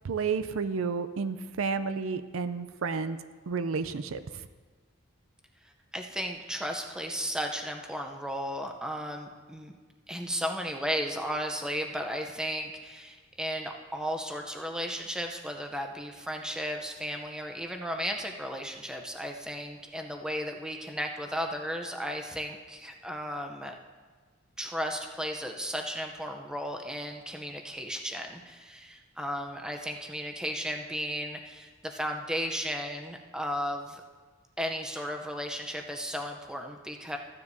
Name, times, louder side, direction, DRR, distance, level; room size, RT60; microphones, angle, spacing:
voice 1, 0.0-3.2 3.5-4.2, right 5 dB, 80° right, 11 dB, 0.5 m, -31 dB
voice 2, 5.9-9.7 10.1-23.7 24.6-34.0 34.6-37.2, equal, 5° right, 3 dB, 0.6 m, -35 dB
14.5 x 9.7 x 2.7 m, 1.4 s
head